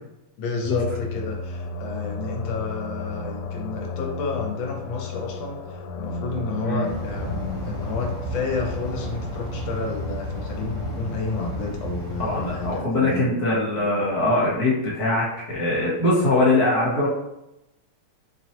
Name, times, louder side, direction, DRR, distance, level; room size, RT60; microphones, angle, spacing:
voice 1, 0.4-13.3, left 4 dB, 70° left, 1 dB, 1.4 m, -30 dB
sound 1, 0.6-11.7, left 4 dB, 90° left, 1.5 m, -35 dB
sound 2, 6.8-12.8, equal, 65° right, 1.7 m, -32 dB
voice 2, 12.2-17.1, left 2 dB, 50° left, -6 dB, 1.4 m, -22 dB
4.5 x 3.0 x 2.9 m, 0.89 s
omnidirectional pair, 2.4 m